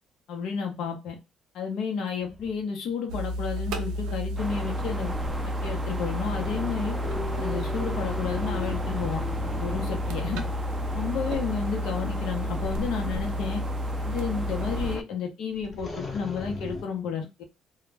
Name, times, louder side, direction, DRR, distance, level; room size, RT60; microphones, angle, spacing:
voice 1, 0.3-1.2 1.5-5.1 5.4-6.9 7.4-9.2 9.6-10.4 10.9-13.6 14.0-17.4, left 6 dB, 75° left, 2 dB, 0.7 m, -31 dB
sound 1, 2.2-2.6 6.2-11.3 15.5-16.8, left 3 dB, 40° left, 0.9 m, -38 dB
sound 2, 3.1-15.0, left 1 dB, 85° right, 0.5 m, -31 dB
sound 3, 4.4-15.0, right 1 dB, 10° right, 0.3 m, -37 dB
2.3 x 2.0 x 3.3 m, 0.26 s
cardioid pair, 90°, 0 cm